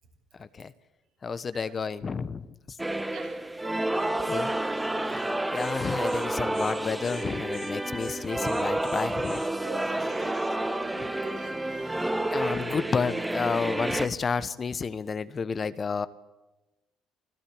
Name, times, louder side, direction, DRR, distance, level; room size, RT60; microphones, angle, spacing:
voice 1, 0.4-0.7 1.2-2.5 4.2-4.5 5.5-9.4 12.3-16.1, left 5 dB, 40° left, 15 dB, 1.1 m, -30 dB
sound 1, 2.8-14.1, right 1 dB, 10° right, 1.5 m, -30 dB
voice 2, 3.1-5.3 5.6-5.7 9.6-12.2, right 6 dB, 65° right, 2 dB, 7.3 m, -47 dB
Insect, 5.2-5.3 5.5-5.7 6.0-6.3 6.5-6.7 7.0-7.2 7.5-7.7 8.0-9.5, left 11 dB, 70° left, 4.3 m, -48 dB
25.0 x 15.5 x 8.7 m, 1.1 s
hypercardioid pair, 60°, 0 cm